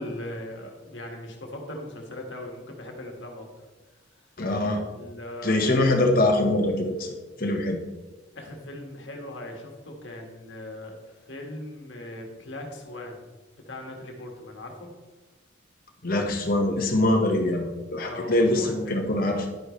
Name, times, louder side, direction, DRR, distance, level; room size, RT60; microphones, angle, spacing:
voice 1, 0.0-3.7 4.9-5.6 8.3-13.3 13.7-14.9 18.0-19.0, left 1 dB, 65° left, 1 dB, 1.9 m, -39 dB
voice 2, 4.4-4.8 5.4-7.8 16.0-19.4, left 1 dB, 45° left, 2 dB, 1.4 m, -23 dB
11.0 x 9.2 x 3.3 m, 1.2 s
head